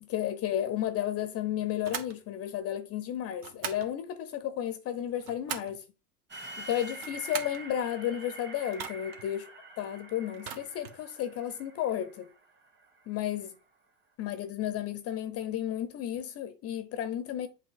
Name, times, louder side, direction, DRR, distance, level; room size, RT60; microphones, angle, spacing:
voice 1, 0.0-5.8 6.6-9.5 9.8-12.3 13.1-13.5 14.2-17.5, left 11 dB, 30° left, 0.6 m, -33 dB
sound 1, 1.8-2.2 3.4-3.9 5.0-5.8 6.9-7.6 8.7-9.2 10.3-11.0, right 7 dB, 45° right, 1.2 m, -40 dB
sound 2, 6.3-13.2, right 2 dB, 20° right, 1.9 m, -46 dB
7.8 x 2.8 x 4.6 m
hypercardioid pair, 85°, 48 cm